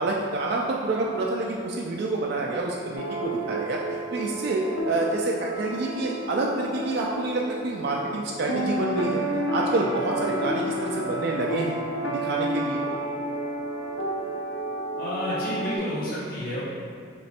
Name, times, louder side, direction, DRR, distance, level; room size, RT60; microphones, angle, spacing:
voice 1, 0.0-3.8 4.1-9.2 9.5-11.8 12.1-12.8, right 2 dB, 55° right, -2 dB, 0.3 m, -27 dB
sound 1, 2.9-15.8, right 1 dB, 75° left, 0.6 m, -31 dB
Bowed string instrument, 8.5-12.8, left 1 dB, ahead, 0.7 m, -40 dB
voice 2, 15.0-16.6, left 1 dB, 50° left, -8 dB, 0.8 m, -30 dB
3.3 x 3.0 x 4.2 m, 2.3 s
head